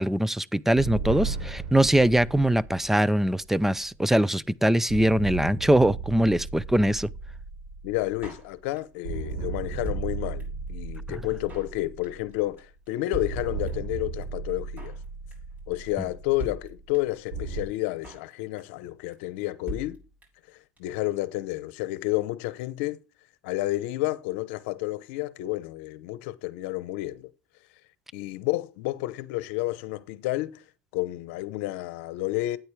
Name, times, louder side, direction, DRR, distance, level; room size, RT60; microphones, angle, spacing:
voice 1, 0.0-7.1, right 1 dB, 5° right, 0.5 m, -22 dB
sound 1, 0.8-4.3 4.9-8.7 9.0-12.7 13.2-17.6, right 4 dB, 80° right, 3.4 m, -36 dB
voice 2, 7.8-15.0 15.7-20.0 20.8-23.0 23.4-27.3 28.1-30.5 30.9-32.6, left 17 dB, 80° left, 0.8 m, -30 dB
Drum kit, 8.2-9.0 9.3-9.4 9.6-10.7 10.9-11.0 11.2-11.8 12.0-12.3 12.6-12.7 12.9-13.0 13.1-14.0 14.2-14.3 14.5-15.1 15.3-15.6 15.9-16.0 16.1-16.2 16.4-17.2 17.5-17.6 17.8-18.3 18.6-18.9 19.1-19.2 19.4-19.5 19.7-20.5 20.8-20.9 21.0-21.1, right 1 dB, 25° right, 6.1 m, -40 dB
9.4 x 8.7 x 3.3 m
supercardioid pair, 95°, 7 cm